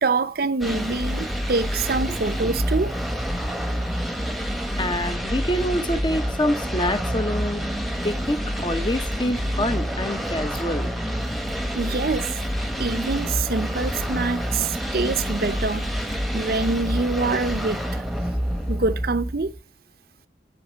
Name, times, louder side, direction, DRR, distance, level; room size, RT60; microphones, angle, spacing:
voice 1, 0.0-2.9 11.7-12.4 12.8-15.9 16.3-18.0 18.7-19.5, right 3 dB, 55° right, 0.6 m, -25 dB
sound 1, 0.6-19.6, equal, ahead, 1.0 m, -27 dB
voice 2, 4.8-7.6 8.0-10.9, left 1 dB, 25° left, 0.8 m, -26 dB
sound 2, 6.0-18.8, left 1 dB, 75° left, 4.6 m, -48 dB
7.9 x 6.0 x 7.4 m
head